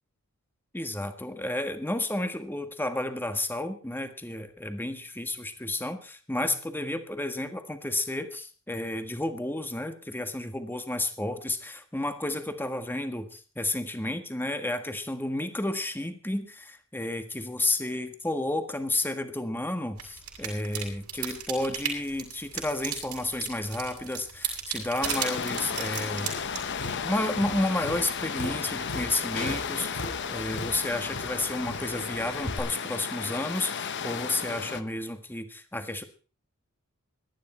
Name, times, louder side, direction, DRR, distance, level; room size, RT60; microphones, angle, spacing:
voice 1, 0.7-26.5 27.0-29.9 30.3-36.0, left 1 dB, 10° left, 8 dB, 1.5 m, -31 dB
sound 1, 20.0-27.0, right 8 dB, 90° right, 7.1 m, -36 dB
sound 2, 25.0-34.8, left 6 dB, 55° left, 0.9 m, -34 dB
Tap, 26.2-32.6, left 1 dB, 90° left, 7.2 m, -39 dB
18.5 x 12.5 x 4.4 m, 0.38 s
head